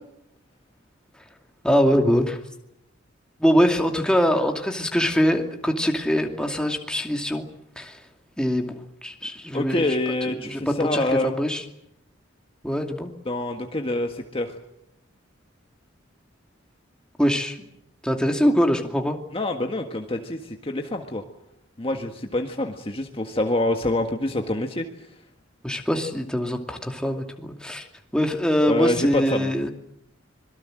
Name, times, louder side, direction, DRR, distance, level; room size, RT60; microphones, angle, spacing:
voice 1, 1.6-2.4 3.4-7.5 7.8-8.0 8.4-9.9 10.5-11.6 12.6-13.1 17.2-17.7 18.0-19.2 25.6-27.8 28.1-29.7, equal, 5° left, 3 dB, 2.5 m, -23 dB
voice 2, 9.5-11.3 13.3-14.5 19.3-21.2 21.8-24.9 28.7-29.5, left 1 dB, 30° left, 3 dB, 1.7 m, -26 dB
26.0 x 22.5 x 7.8 m, 0.81 s
head